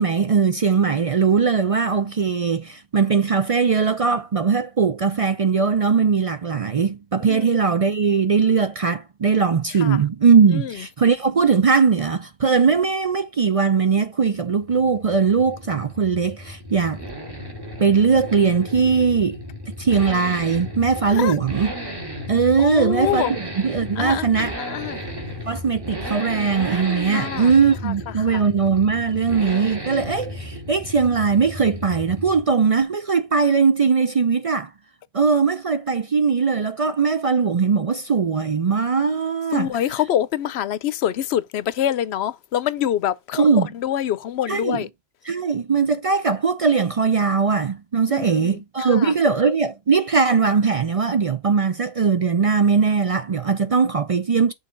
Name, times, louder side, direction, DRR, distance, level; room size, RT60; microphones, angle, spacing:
voice 1, 0.0-17.0 17.8-19.4 19.8-21.7 22.3-24.6 25.5-34.7 35.1-39.7 43.4-43.7 44.5-44.8 45.3-54.5, right 5 dB, 45° right, 0.4 m, -20 dB
voice 2, 7.3-7.6 9.8-10.0 10.5-10.7 21.1-21.3 22.6-23.4 24.0-25.0 27.1-27.5 27.8-27.9 28.3-28.4 39.5-44.9 48.1-48.6 49.0-49.1, left 10 dB, 80° left, 0.9 m, -25 dB
Accelerating revving vroom, 14.4-32.6 32.8-32.9, equal, 20° right, 1.8 m, -34 dB
6.5 x 4.1 x 3.7 m
omnidirectional pair, 1.1 m